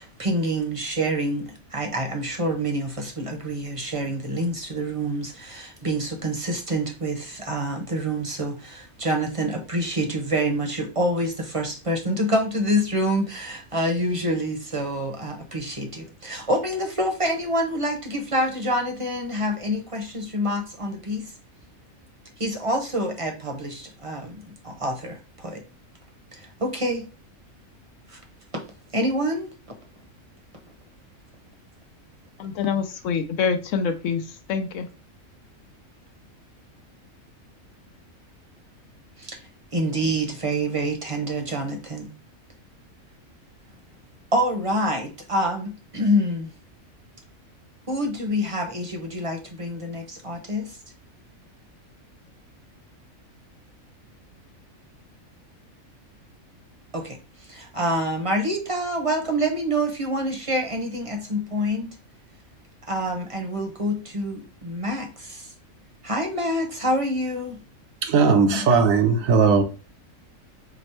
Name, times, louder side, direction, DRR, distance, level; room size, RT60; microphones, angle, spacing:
voice 1, 0.0-21.3 22.4-25.6 26.3-27.1 28.1-28.2 28.9-29.5 39.2-39.4 39.7-42.1 44.3-46.5 47.9-50.8 56.9-57.2 57.5-61.9 62.9-65.5 66.0-67.6 68.5-68.6, equal, 30° right, 0.8 m, -27 dB
voice 2, 32.4-34.9, left 6 dB, 70° left, 1.0 m, -26 dB
voice 3, 68.0-69.6, right 5 dB, 75° right, 1.1 m, -18 dB
5.0 x 2.1 x 4.3 m
omnidirectional pair, 1.4 m